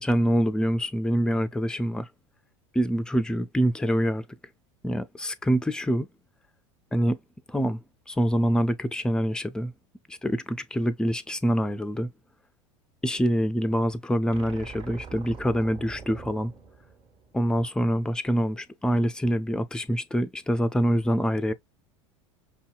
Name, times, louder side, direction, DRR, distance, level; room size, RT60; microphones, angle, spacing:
voice 1, 0.0-2.1 2.7-4.2 4.8-6.1 6.9-7.2 7.5-7.8 8.1-9.7 10.1-12.1 13.0-16.5 17.3-21.5, equal, 5° left, 0.4 m, -25 dB
sound 1, 14.3-17.7, right 5 dB, 35° right, 1.4 m, -43 dB
5.5 x 2.7 x 2.3 m
figure-of-eight pair, 75°, 16 cm